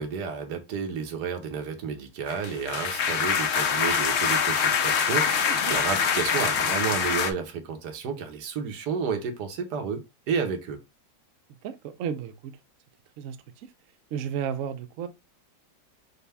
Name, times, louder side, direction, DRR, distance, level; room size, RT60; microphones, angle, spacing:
voice 1, 0.0-10.0 10.3-10.8, right 6 dB, 65° right, 1.4 m, -31 dB
sound 1, 2.3-7.3, left 6 dB, 65° left, 0.8 m, -24 dB
voice 2, 5.5-5.8 11.6-12.6 13.2-13.7 14.1-15.1, right 8 dB, 85° right, 0.7 m, -33 dB
5.5 x 2.1 x 3.4 m
omnidirectional pair, 2.0 m